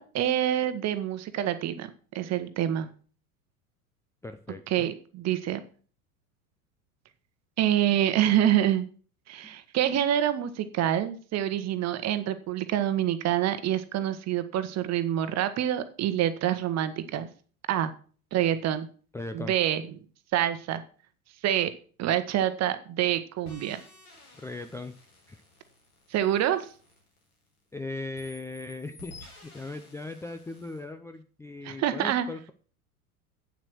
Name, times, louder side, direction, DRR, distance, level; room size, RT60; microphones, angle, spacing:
voice 1, 0.0-1.9 2.1-2.9 4.7-5.6 7.6-8.9 9.3-17.3 17.7-17.9 18.3-18.9 19.3-19.8 20.3-20.8 21.4-21.7 22.0-23.8 26.1-26.7 31.6-32.3, right 11 dB, 35° right, 11 dB, 1.3 m, -26 dB
voice 2, 4.2-4.9 9.4-9.5 19.1-19.5 24.4-24.9 25.3-25.4 27.7-32.5, left 2 dB, 5° left, 8 dB, 0.6 m, -38 dB
sound 1, 23.4-27.7 28.1-30.8, left 2 dB, 75° left, 4.6 m, -53 dB
8.6 x 7.5 x 6.3 m, 0.42 s
figure-of-eight pair, 80°, 43 cm